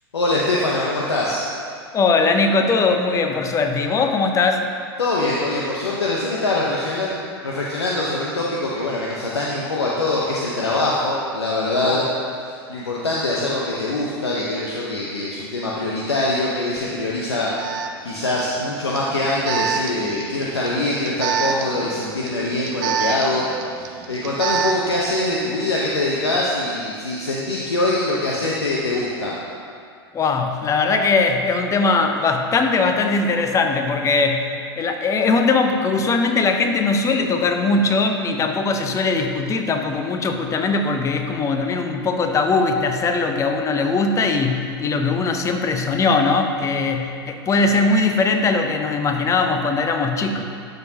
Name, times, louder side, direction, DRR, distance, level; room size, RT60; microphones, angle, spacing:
voice 1, 0.1-1.4 5.0-7.2 7.4-12.1 12.7-17.7 18.0-23.5 23.7-29.3, left 2 dB, 80° left, -4 dB, 0.9 m, -23 dB
voice 2, 1.9-4.7 11.8-12.0 30.1-50.4, left 3 dB, 20° left, 5 dB, 0.7 m, -20 dB
Alarm, 16.8-16.9 17.6-24.9, right 7 dB, 50° right, 0.7 m, -27 dB
12.0 x 6.2 x 2.8 m, 2.3 s
figure-of-eight pair, 90°, 14 cm